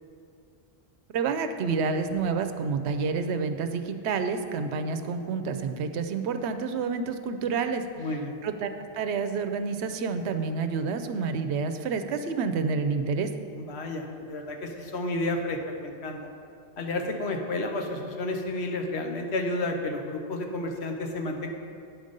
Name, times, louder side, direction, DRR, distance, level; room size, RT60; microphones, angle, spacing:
voice 1, 1.1-8.1 8.4-13.3, right 5 dB, 85° right, 8 dB, 0.9 m, -29 dB
voice 2, 8.0-8.4 13.5-16.3 16.8-21.5, left 2 dB, 75° left, 3 dB, 1.1 m, -31 dB
9.1 x 5.1 x 5.3 m, 2.5 s
omnidirectional pair, 1.1 m